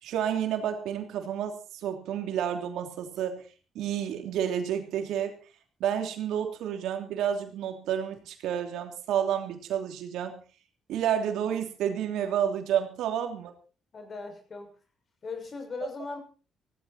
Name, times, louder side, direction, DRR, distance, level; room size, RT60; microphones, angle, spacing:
voice 1, 0.0-3.5 3.7-5.4 5.8-10.4 10.9-13.5, right 9 dB, 85° right, 5 dB, 3.1 m, -30 dB
voice 2, 13.9-14.7 15.2-16.2, left 4 dB, 45° left, 6 dB, 6.3 m, -38 dB
17.0 x 16.0 x 4.3 m, 0.37 s
cardioid pair, 90°, 0 cm